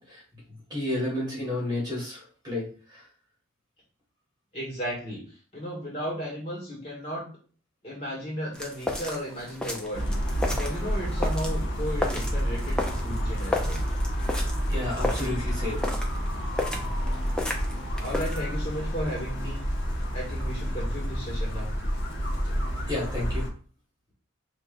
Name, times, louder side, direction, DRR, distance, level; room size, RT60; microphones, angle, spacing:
voice 1, 0.7-2.6 2.9-3.0 14.7-15.8 22.9-23.4, left 1 dB, 20° right, -5 dB, 2.0 m, -31 dB
voice 2, 4.5-7.3 7.8-10.1 10.4-13.8 16.7-16.9 18.0-19.6 20.1-21.7, equal, 30° left, -6 dB, 2.0 m, -35 dB
sound 1, 8.5-18.5, left 2 dB, 5° left, 0.5 m, -34 dB
sound 2, 9.9-23.5, equal, 60° left, 1.0 m, -29 dB
5.3 x 3.2 x 2.6 m, 0.40 s
head